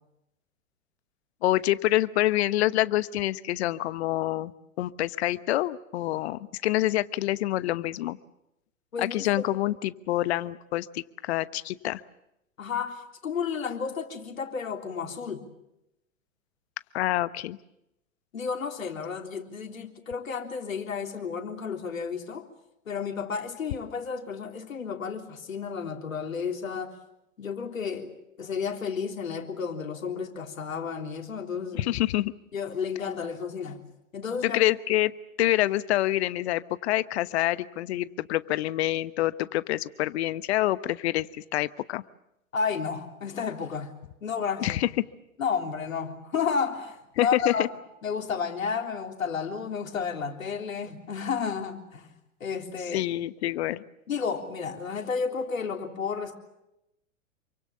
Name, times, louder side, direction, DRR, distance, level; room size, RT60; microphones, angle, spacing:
voice 1, 1.4-4.5 4.8-8.2 9.0-12.0 16.9-17.6 31.7-32.3 34.4-35.1 35.4-42.0 44.6-44.9 47.2-47.7 52.9-53.8, left 15 dB, 50° left, 1.1 m, -26 dB
voice 2, 8.9-9.3 12.6-15.5 18.3-22.4 22.9-26.9 27.4-28.1 28.4-31.9 32.5-33.8 34.1-34.6 42.5-43.9 44.2-44.8 45.4-47.6 48.0-52.1 52.4-53.1 54.1-56.4, left 6 dB, 75° left, 3.6 m, -32 dB
28.0 x 24.5 x 7.1 m
figure-of-eight pair, 105°, 41 cm